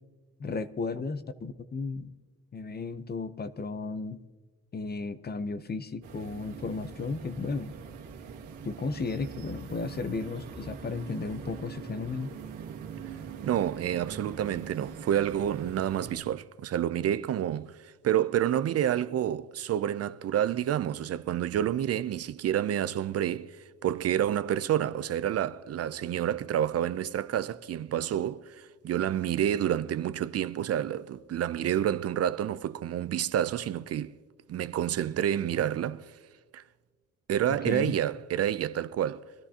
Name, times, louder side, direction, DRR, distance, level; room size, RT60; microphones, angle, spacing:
voice 1, 0.4-2.1 2.5-4.2 4.7-7.7 8.6-12.3 37.5-37.9, left 4 dB, 35° left, 0.7 m, -34 dB
sound 1, 6.0-16.2, right 6 dB, 90° right, 1.6 m, -43 dB
voice 2, 13.4-34.1 34.5-36.1 36.5-36.6 37.3-39.3, right 10 dB, 55° right, 0.5 m, -29 dB
24.0 x 13.0 x 2.8 m
cardioid pair, 90°, 30 cm